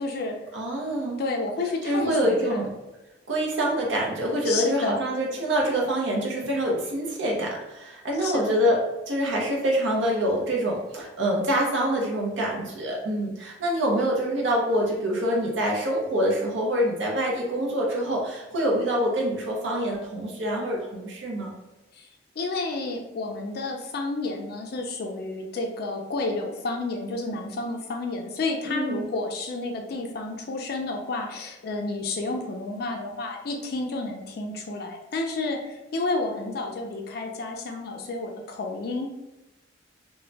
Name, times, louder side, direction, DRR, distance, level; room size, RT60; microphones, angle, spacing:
voice 1, 0.0-0.5 1.2-2.7 4.4-5.0 8.2-8.7 21.9-22.1 22.4-39.1, left 3 dB, 55° left, 2 dB, 0.4 m, -31 dB
voice 2, 0.5-1.2 1.8-2.7 3.3-8.8 9.1-21.5 28.7-29.1, equal, 75° right, -2 dB, 0.6 m, -25 dB
2.2 x 2.1 x 3.8 m, 0.98 s
head